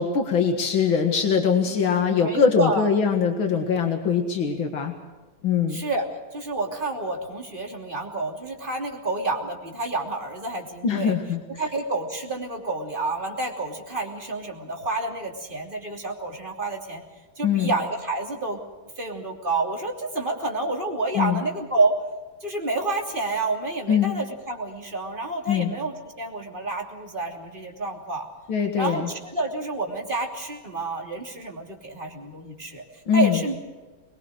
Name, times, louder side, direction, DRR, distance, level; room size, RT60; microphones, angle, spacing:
voice 1, 0.0-4.9 5.4-5.8 10.8-11.4 17.4-17.7 21.2-21.4 23.9-24.1 25.5-25.7 28.5-29.1 33.1-33.4, left 6 dB, 90° left, 4 dB, 2.5 m, -22 dB
voice 2, 2.2-2.9 5.7-6.1 6.3-11.1 11.6-17.0 17.4-18.6 19.0-21.9 22.4-28.3 28.8-33.6, right 2 dB, 25° right, 1 dB, 3.2 m, -29 dB
23.0 x 21.0 x 6.4 m, 1.2 s
omnidirectional pair, 2.1 m